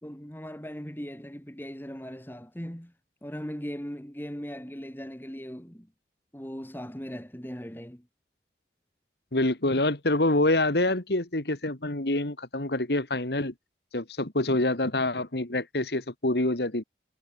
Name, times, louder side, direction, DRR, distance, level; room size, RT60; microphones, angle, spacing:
voice 1, 0.0-2.9 3.2-5.9 6.3-8.0, equal, 10° left, 2.3 m, -39 dB
voice 2, 9.3-13.5 13.9-16.8, left 2 dB, 70° left, 2.2 m, -26 dB
head